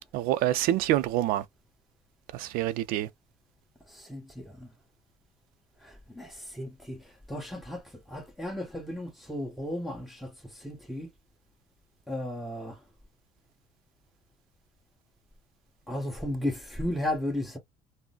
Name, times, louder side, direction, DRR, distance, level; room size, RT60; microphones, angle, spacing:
voice 1, 0.1-1.5 2.3-3.1, right 13 dB, 70° right, 0.4 m, -26 dB
voice 2, 3.9-4.7 5.8-7.0 7.3-7.8 8.1-10.3 10.6-11.1 12.1-12.8 15.9-17.6, left 1 dB, ahead, 1.1 m, -34 dB
3.8 x 2.0 x 2.3 m
supercardioid pair, 95°, 15 cm